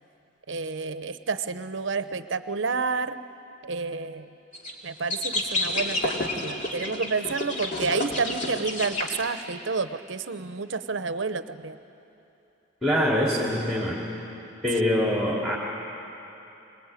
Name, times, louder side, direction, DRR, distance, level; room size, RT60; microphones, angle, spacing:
voice 1, 0.5-3.2 3.6-4.3 4.8-11.8, right 4 dB, 70° right, 11 dB, 0.8 m, -30 dB
sound 1, 4.5-4.7 5.1-9.2, left 2 dB, 40° left, 2.5 m, -30 dB
voice 2, 12.8-14.0 14.6-15.6, equal, 5° right, -5 dB, 2.8 m, -24 dB
25.5 x 20.0 x 9.1 m, 2.9 s
head